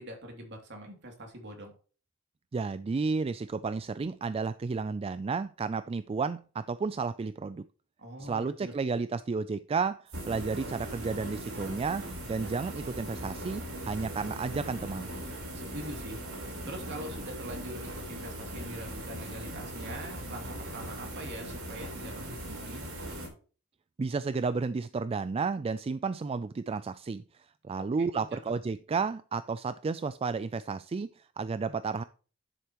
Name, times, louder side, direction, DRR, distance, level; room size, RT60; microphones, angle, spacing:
voice 1, 0.0-1.7 8.0-8.7 15.5-16.3 16.6-22.8 27.8-28.4, right 1 dB, 55° right, 2.8 m, -43 dB
voice 2, 2.5-7.7 8.2-15.1 24.0-32.0, right 4 dB, 25° right, 0.3 m, -32 dB
sound 1, 10.1-23.3, right 1 dB, 85° right, 4.2 m, -40 dB
10.0 x 7.9 x 3.0 m
head